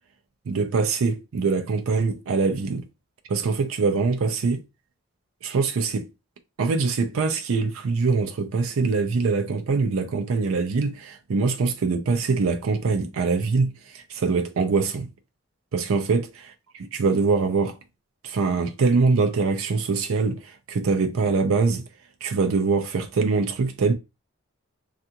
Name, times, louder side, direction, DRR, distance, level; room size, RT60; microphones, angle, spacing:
voice 1, 0.5-2.8 3.3-4.6 5.4-6.1 6.6-15.1 15.7-16.2 16.8-17.7 18.2-21.8 22.2-23.9, right 4 dB, 85° right, 0.4 m, -23 dB
3.3 x 2.4 x 2.8 m
head